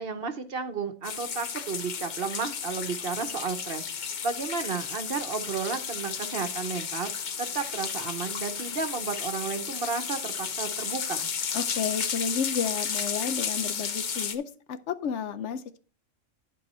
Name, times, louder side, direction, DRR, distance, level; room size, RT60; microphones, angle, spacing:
voice 1, 0.0-11.3, right 5 dB, 50° right, 8 dB, 1.0 m, -33 dB
sound 1, 1.0-14.4, left 7 dB, 45° left, 0.7 m, -33 dB
voice 2, 11.5-14.4 14.7-15.8, left 7 dB, 70° left, 12 dB, 0.9 m, -31 dB
11.0 x 4.7 x 4.2 m, 0.43 s
omnidirectional pair, 1.3 m